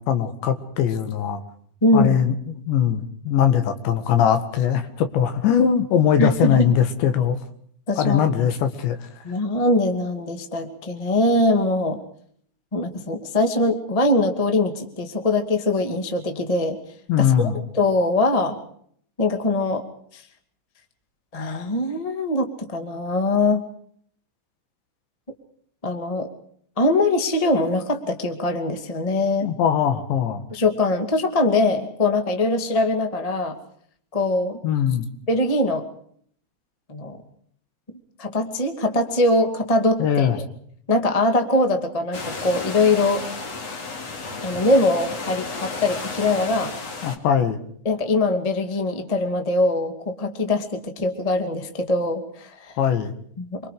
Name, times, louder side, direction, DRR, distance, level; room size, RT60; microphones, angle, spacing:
voice 1, 0.1-1.4 1.9-7.4 8.0-9.0 17.1-17.6 29.4-30.4 34.6-35.1 40.0-40.4 47.0-47.6 52.8-53.1, left 8 dB, 80° left, 8 dB, 4.1 m, -21 dB
voice 2, 1.8-2.2 6.2-6.7 7.9-8.2 9.2-12.0 12.7-16.8 17.2-17.5 17.7-18.6 19.2-19.8 20.1-20.2 21.3-23.6 25.8-26.3 26.8-29.5 30.5-33.5 34.1-34.6 35.3-35.8 36.9-37.2 38.2-40.3 40.9-43.2 44.4-46.7 47.8-52.7 53.4-53.6, left 2 dB, 20° left, 5 dB, 0.9 m, -22 dB
sound 1, 42.1-47.2, left 4 dB, 40° left, 3.2 m, -33 dB
27.0 x 24.0 x 5.1 m, 0.63 s
omnidirectional pair, 5.1 m